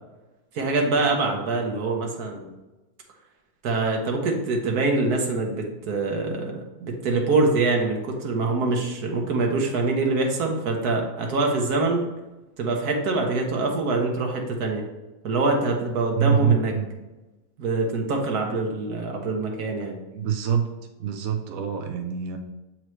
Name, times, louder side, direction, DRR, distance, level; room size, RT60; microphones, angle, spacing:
voice 1, 0.5-2.5 3.6-12.1 12.6-14.8 15.2-16.7 17.6-20.0, right 3 dB, 90° right, 1 dB, 1.6 m, -24 dB
voice 2, 16.2-16.9 20.1-20.7 21.0-22.4, right 8 dB, 70° right, 5 dB, 1.0 m, -24 dB
7.6 x 4.6 x 3.1 m, 1.1 s
omnidirectional pair, 1.6 m